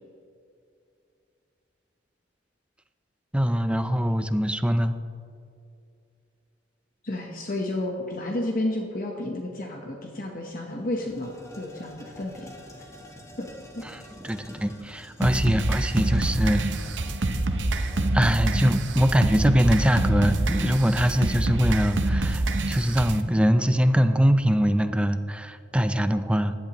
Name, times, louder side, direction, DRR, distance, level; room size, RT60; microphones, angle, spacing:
voice 1, 3.3-4.9 14.3-16.7 18.1-26.6, equal, 5° right, 10 dB, 0.4 m, -22 dB
voice 2, 7.0-12.5 12.8-12.9 13.4-13.5 13.7-13.9 15.3-15.4, left 1 dB, 50° left, 1 dB, 1.0 m, -31 dB
sound 1, 10.0-10.1 10.4-21.1, left 1 dB, 15° left, 1.3 m, -47 dB
sound 2, 15.2-23.2, right 2 dB, 75° right, 0.8 m, -26 dB
15.5 x 10.5 x 3.0 m, 2.5 s
head